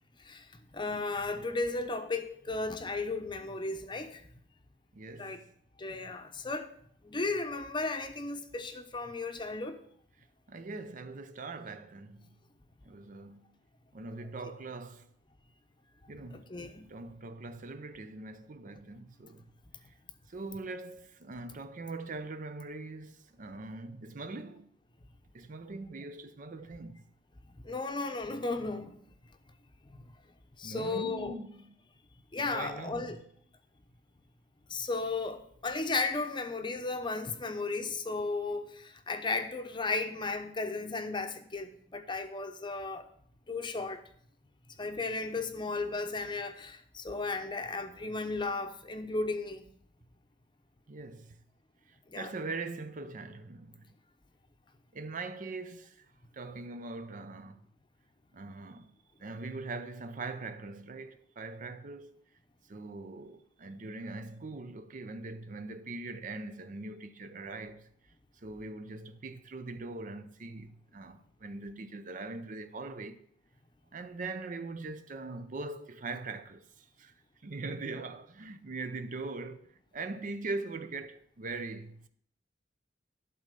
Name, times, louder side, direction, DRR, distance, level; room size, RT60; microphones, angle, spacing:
voice 1, 0.7-4.2 5.2-5.4 5.8-6.7 7.0-9.8 16.3-16.9 27.6-29.0 30.6-31.4 32.3-33.2 34.7-43.0 43.5-44.0 44.8-49.6 52.1-52.3, left 3 dB, 25° left, 0.7 m, -35 dB
voice 2, 4.9-5.4 10.5-12.3 12.8-13.5 13.9-15.1 16.1-16.6 16.9-19.5 20.3-24.7 25.3-27.0 30.6-31.7 32.4-33.2 50.9-51.3 52.1-53.9 54.9-56.0 56.3-57.6 58.3-58.9 59.2-62.2 62.7-67.9 68.4-73.3 73.9-77.1 77.4-82.1, right 3 dB, 45° right, 0.5 m, -41 dB
12.0 x 4.1 x 6.7 m
head